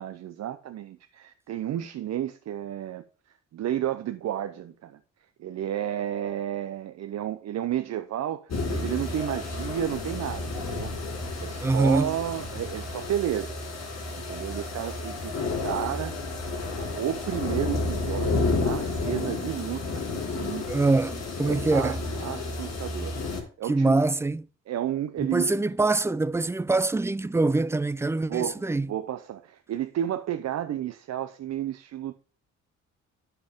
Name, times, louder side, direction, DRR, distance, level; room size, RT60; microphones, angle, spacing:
voice 1, 0.0-3.0 3.5-5.0 5.4-10.9 11.4-13.6 14.2-16.2 16.8-20.9 21.4-24.0 24.7-25.5 28.3-32.1, right 11 dB, 60° right, 0.7 m, -32 dB
sound 1, 8.5-23.4, left 3 dB, 60° left, 4.3 m, -31 dB
voice 2, 11.6-12.1 20.7-22.0 23.7-24.5 25.2-28.9, right 3 dB, 10° right, 0.4 m, -24 dB
10.5 x 4.7 x 5.2 m
cardioid pair, 90°, 30 cm